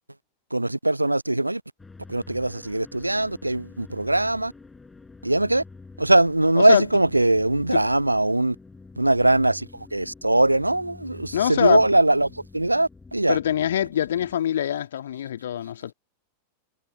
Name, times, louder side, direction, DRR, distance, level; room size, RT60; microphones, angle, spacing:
voice 1, 0.5-1.6 2.1-4.5 5.2-5.6 6.0-8.6 9.0-13.4, right 1 dB, 85° right, 0.6 m, -21 dB
sound 1, 1.8-14.4, left 3 dB, 10° left, 7.7 m, -47 dB
voice 2, 11.3-11.9 13.3-15.9, left 10 dB, 60° left, 2.5 m, -24 dB
figure-of-eight pair, 90°, 0 cm